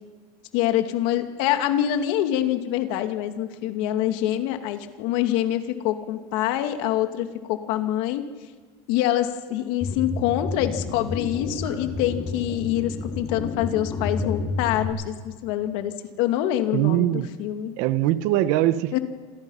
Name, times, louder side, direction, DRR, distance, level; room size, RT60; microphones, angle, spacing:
voice 1, 0.5-8.3 8.9-17.7 18.9-19.0, left 12 dB, 70° left, 6 dB, 2.4 m, -25 dB
sound 1, 9.8-14.9, left 3 dB, 30° left, 4.6 m, -30 dB
voice 2, 16.7-17.3 17.8-19.0, right 14 dB, 65° right, 14 dB, 1.1 m, -22 dB
28.0 x 27.5 x 5.8 m, 1.4 s
cardioid pair, 170°, 15 cm